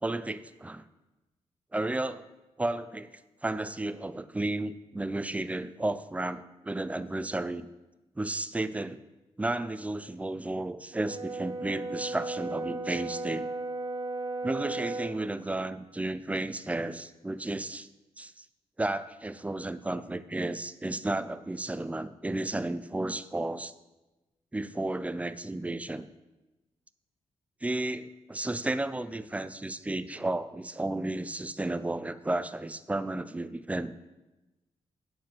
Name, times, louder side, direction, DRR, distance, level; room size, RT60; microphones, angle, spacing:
voice 1, 0.0-0.8 1.7-2.3 2.6-7.7 8.2-9.0 9.4-13.5 14.4-17.9 18.2-18.5 18.8-23.7 24.5-26.1 27.6-33.9, right 2 dB, 10° right, 14 dB, 0.4 m, -33 dB
Brass instrument, 10.9-15.2, right 2 dB, 35° right, 1.3 m, -35 dB
9.3 x 4.7 x 7.6 m, 1.1 s
cardioid pair, 90°, 12 cm